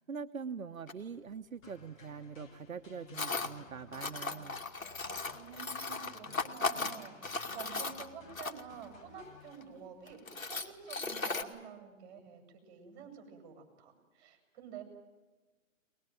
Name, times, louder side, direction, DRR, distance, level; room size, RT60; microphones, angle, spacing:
voice 1, 0.0-4.6, right 6 dB, 80° right, 7 dB, 1.1 m, -43 dB
Tools, 0.9-1.0 3.1-3.5 3.9-8.8 9.5-9.6 10.1-11.4, left 4 dB, 85° left, 2.7 m, -37 dB
sound 1, 1.6-10.0, left 4 dB, 35° left, 5.5 m, -57 dB
voice 2, 5.3-14.8, right 8 dB, 30° right, 4 dB, 7.2 m, -50 dB
22.5 x 21.5 x 9.1 m, 1.3 s
hypercardioid pair, 135°, 40 cm